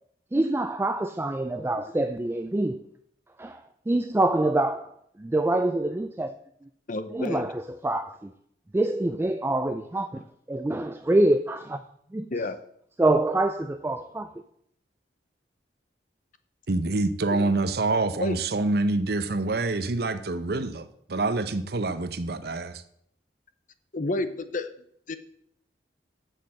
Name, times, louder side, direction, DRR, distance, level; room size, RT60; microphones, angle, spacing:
voice 1, 0.3-2.8 3.4-4.9 5.2-6.3 7.1-8.3 8.7-10.2 10.5-11.8 12.1-12.3 13.0-14.3, right 2 dB, 15° right, 0.4 m, -25 dB
voice 2, 6.9-7.5 12.3-12.6 17.3-17.5 18.2-18.4 23.9-24.7 25.1-25.2, left 2 dB, 50° left, 0.8 m, -30 dB
voice 3, 16.7-22.8, right 2 dB, 65° right, 0.8 m, -26 dB
7.5 x 6.6 x 7.5 m
head